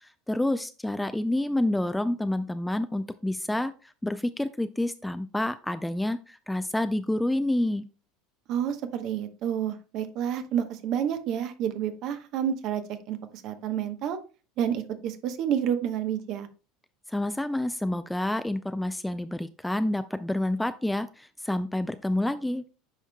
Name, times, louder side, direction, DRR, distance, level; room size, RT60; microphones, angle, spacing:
voice 1, 0.0-7.8 17.1-22.6, left 1 dB, 5° left, 12 dB, 0.3 m, -28 dB
voice 2, 8.5-12.8 13.1-13.2 13.4-14.2 14.6-16.5, right 9 dB, 55° right, 9 dB, 0.9 m, -29 dB
10.0 x 4.5 x 2.2 m, 0.34 s
hypercardioid pair, 80°, 0 cm